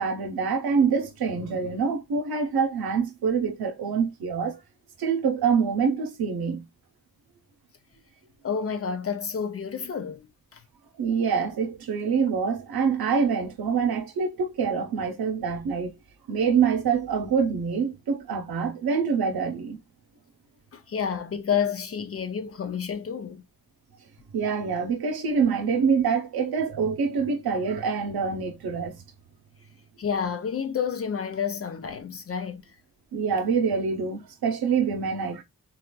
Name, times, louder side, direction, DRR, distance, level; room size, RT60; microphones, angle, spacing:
voice 1, 0.0-4.6 5.0-6.7 11.0-15.9 16.3-19.8 24.3-29.0 33.1-35.4, right 6 dB, 85° right, 0.8 m, -25 dB
voice 2, 8.4-10.3 20.7-23.4 30.0-32.6, left 7 dB, 40° left, 0.4 m, -29 dB
4.1 x 2.5 x 2.2 m
wide cardioid pair, 170°, 36 cm